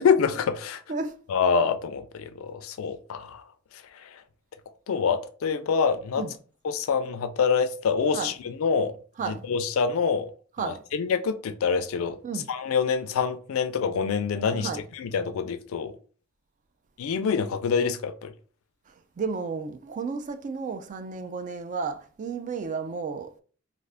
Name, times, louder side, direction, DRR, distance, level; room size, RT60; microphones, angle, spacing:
voice 1, 0.0-0.8 1.3-3.4 4.0-4.2 4.9-6.2 6.6-8.3 8.6-8.9 9.3-10.3 10.6-12.2 12.5-14.7 15.0-15.9 17.0-18.3, left 6 dB, 75° left, 0.4 m, -26 dB
voice 2, 14.5-14.8 18.9-23.3, right 5 dB, 35° right, 0.3 m, -33 dB
2.4 x 2.4 x 3.4 m
head